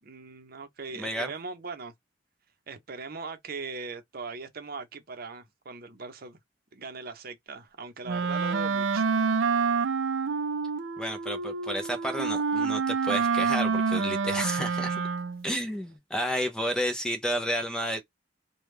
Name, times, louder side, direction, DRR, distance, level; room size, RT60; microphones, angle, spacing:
voice 1, 0.0-1.9 2.7-6.4 6.7-9.1, right 4 dB, 50° right, 0.7 m, -40 dB
voice 2, 0.9-1.3 11.0-15.0 15.4-18.0, equal, 5° left, 0.5 m, -31 dB
Wind instrument woodwind instrument, 8.1-15.5, right 5 dB, 85° right, 0.5 m, -27 dB
3.3 x 2.3 x 3.2 m
head